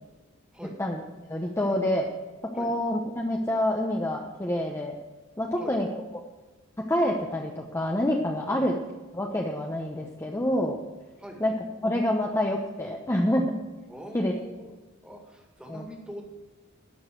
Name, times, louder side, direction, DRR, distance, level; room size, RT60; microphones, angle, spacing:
voice 1, 1.3-2.1 2.5-5.0 5.4-5.9 6.9-8.7 9.1-10.8 11.4-11.5 11.8-13.6 14.1-14.3 15.7-15.9, left 1 dB, 15° left, 0 dB, 0.9 m, -27 dB
voice 2, 13.9-16.2, equal, 5° right, 1 dB, 2.1 m, -43 dB
11.5 x 6.4 x 7.7 m, 1.2 s
head